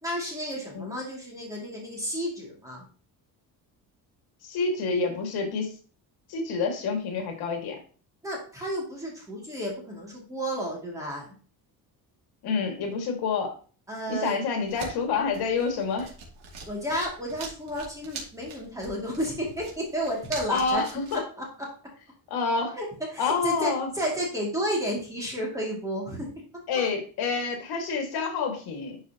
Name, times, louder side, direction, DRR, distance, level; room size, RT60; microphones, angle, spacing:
voice 1, 0.0-2.8 8.2-11.3 13.9-14.4 16.7-20.8 22.8-22.9 23.1-26.3, equal, 10° right, -3 dB, 2.4 m, -32 dB
voice 2, 4.4-5.7 6.3-7.8 12.4-13.5 14.1-16.1 20.5-21.2 22.3-22.8 23.2-23.9 26.7-29.0, left 4 dB, 80° left, 3 dB, 2.1 m, -28 dB
sound 1, 14.6-21.2, right 4 dB, 85° right, 2.7 m, -43 dB
11.0 x 4.7 x 2.9 m, 0.39 s
cardioid pair, 180°, 38 cm